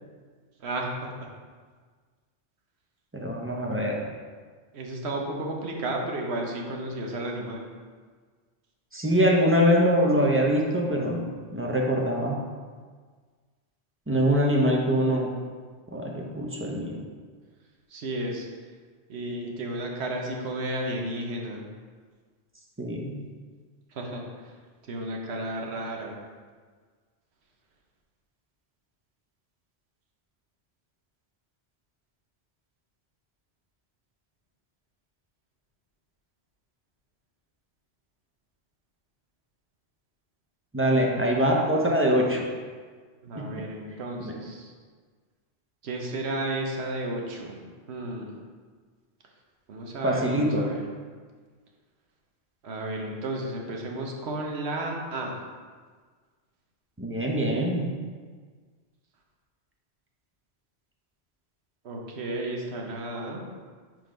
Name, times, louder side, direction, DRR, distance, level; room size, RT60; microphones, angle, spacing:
voice 1, 0.6-1.3 4.7-7.7 17.9-18.5 19.1-21.7 23.9-24.5 24.8-26.2 43.2-44.7 45.8-48.4 49.7-50.8 52.6-55.3 61.8-63.4, right 1 dB, 75° right, 1 dB, 1.1 m, -33 dB
voice 2, 3.1-4.0 8.9-11.2 11.5-12.4 14.1-15.3 15.9-17.0 22.8-23.2 40.7-42.4 43.3-43.5 44.2-44.3 50.0-50.7 57.0-57.8, equal, 15° right, -1 dB, 0.6 m, -23 dB
4.8 x 3.9 x 5.1 m, 1.6 s
omnidirectional pair, 1.1 m